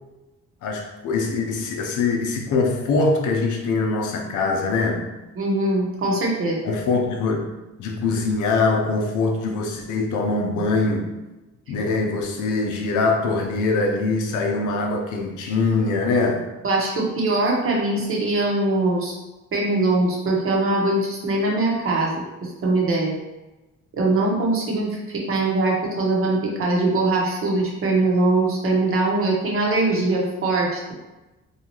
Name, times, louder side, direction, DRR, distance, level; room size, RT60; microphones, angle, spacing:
voice 1, 0.6-5.1 6.6-11.1 11.7-16.5, left 3 dB, 80° left, 2 dB, 0.6 m, -23 dB
voice 2, 5.4-6.6 16.6-19.1 19.5-23.1 23.9-30.9, right 2 dB, 45° right, -2 dB, 0.9 m, -22 dB
2.8 x 2.4 x 2.9 m, 1.1 s
cardioid pair, 90°, 30 cm